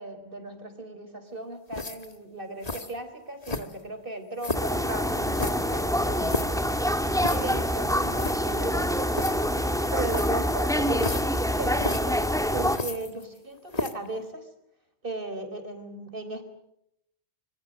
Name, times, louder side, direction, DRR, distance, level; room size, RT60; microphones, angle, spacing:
voice 1, 0.0-6.3 7.3-12.2 12.5-14.5 15.0-16.4, right 2 dB, 55° right, 8 dB, 4.2 m, -36 dB
sound 1, 1.7-2.2 2.6-2.9 3.4-3.9 4.4-4.8 5.3-6.6 7.2-7.6 7.9-8.0 8.1-8.4 9.1-9.3 10.1-10.4 10.9-11.4 11.7-12.0 12.7-13.4 13.7-14.1, left 2 dB, 35° left, 1.7 m, -33 dB
sound 2, 4.5-12.8, equal, 5° left, 1.8 m, -26 dB
25.5 x 24.0 x 7.7 m, 0.79 s
omnidirectional pair, 1.1 m